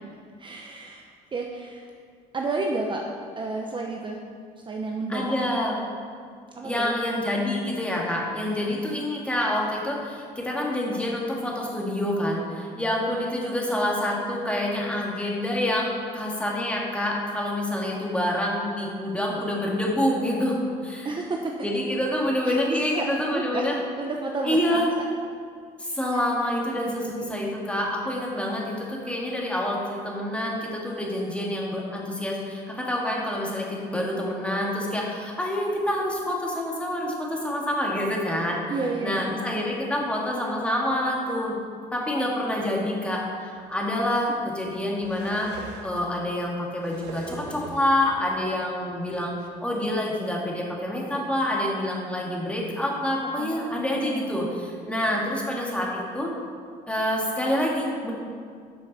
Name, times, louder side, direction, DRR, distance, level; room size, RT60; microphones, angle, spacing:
voice 1, 0.4-1.0 1.3-1.9 2.3-3.0 3.3-4.2 4.7-5.3 6.6-6.9 21.0-21.7 22.5-23.6 24.0-25.1 26.7-27.5 38.7-39.6 53.4-54.6, right 3 dB, 30° right, 1 dB, 0.8 m, -31 dB
voice 2, 5.1-5.8 6.6-21.1 21.6-23.8 24.4-24.9 25.8-38.6 39.0-41.5 41.9-45.5 45.8-49.3 49.6-56.3 56.9-58.1, left 1 dB, 5° left, -3 dB, 2.0 m, -27 dB
sound 1, 43.6-43.7 44.6-46.0 46.6-47.9 48.9-49.0 49.4-49.5, right 4 dB, 80° right, 1.1 m, -42 dB
12.0 x 6.4 x 4.2 m, 2.2 s
cardioid pair, 110°, 17 cm